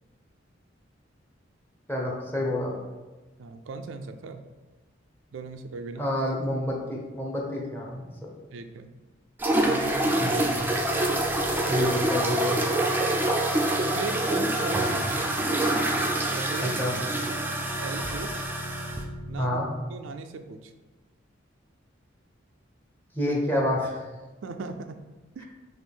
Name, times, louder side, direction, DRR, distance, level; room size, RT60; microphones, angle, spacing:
voice 1, 1.9-2.7 6.0-8.1 10.2-10.5 11.7-12.6 16.6-16.9 19.4-19.7 23.1-24.1, left 1 dB, 10° left, -2 dB, 0.8 m, -28 dB
voice 2, 3.4-4.4 5.3-6.1 8.5-8.9 9.7-10.4 11.6-11.9 13.7-15.2 16.3-17.0 17.8-18.4 19.3-19.6 19.9-20.7 24.4-25.0 25.3-25.4, right 4 dB, 80° right, 7 dB, 0.4 m, -38 dB
sound 1, 9.4-19.0, right 1 dB, 10° right, 0.4 m, -26 dB
sound 2, 10.0-19.6, equal, 75° left, 1.2 m, -39 dB
6.0 x 2.4 x 3.5 m, 1.2 s
head